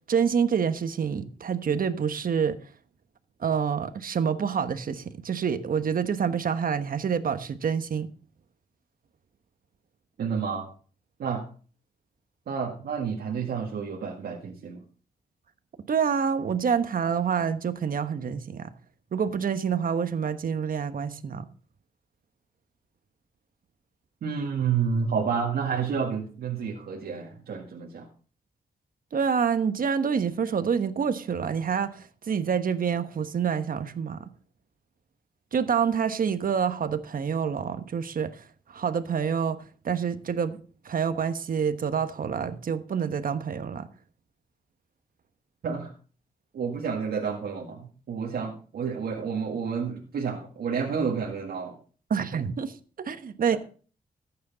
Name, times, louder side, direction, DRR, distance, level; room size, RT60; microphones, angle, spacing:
voice 1, 0.1-2.6 3.4-8.1 15.9-18.7 19.1-21.5 29.1-34.3 35.5-38.4 38.7-40.6 40.8-43.9 52.1-53.6, right 7 dB, 60° right, 1.2 m, -27 dB
voice 2, 10.2-10.7 11.2-11.5 12.5-14.8 24.2-28.1 45.6-45.9 46.5-51.8, right 6 dB, 75° right, 1.8 m, -30 dB
14.5 x 9.5 x 4.1 m
cardioid pair, 60°, 16 cm